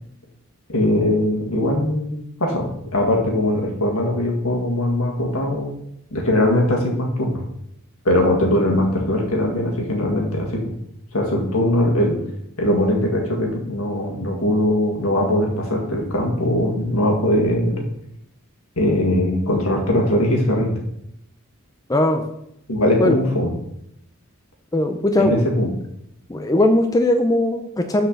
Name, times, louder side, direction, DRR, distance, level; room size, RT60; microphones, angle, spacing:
voice 1, 0.7-5.8 6.1-7.4 8.0-10.7 11.1-12.2 12.6-17.8 18.8-20.8 22.7-23.6 25.2-25.7, left 1 dB, 75° left, 0 dB, 1.9 m, -20 dB
voice 2, 21.9-22.2 23.0-23.2 24.7-25.4 26.3-28.1, left 1 dB, 15° left, 6 dB, 0.4 m, -19 dB
6.2 x 4.9 x 6.4 m, 0.76 s
head